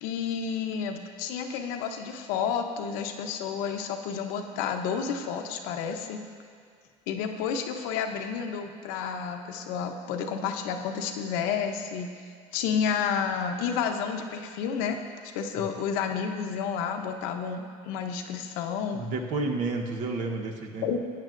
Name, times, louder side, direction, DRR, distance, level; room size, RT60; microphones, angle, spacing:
voice 1, 0.0-6.2 7.1-12.1 12.5-15.0 15.3-19.0 20.8-21.0, left 7 dB, 85° left, 4 dB, 0.9 m, -30 dB
voice 2, 18.9-21.0, right 3 dB, 60° right, 3 dB, 1.1 m, -31 dB
16.5 x 9.1 x 2.6 m, 2.1 s
cardioid pair, 140°, 15 cm